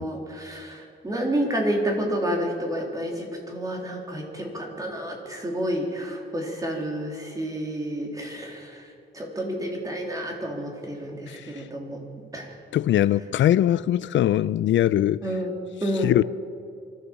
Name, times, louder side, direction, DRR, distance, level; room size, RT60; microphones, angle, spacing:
voice 1, 0.0-8.9 9.1-12.0 12.3-12.6 15.2-15.5 15.8-16.1, equal, 20° right, 3.2 m, -29 dB
voice 2, 12.7-15.2 16.0-16.2, left 12 dB, 85° left, 0.4 m, -21 dB
24.0 x 15.0 x 7.4 m
wide cardioid pair, 175°, 19 cm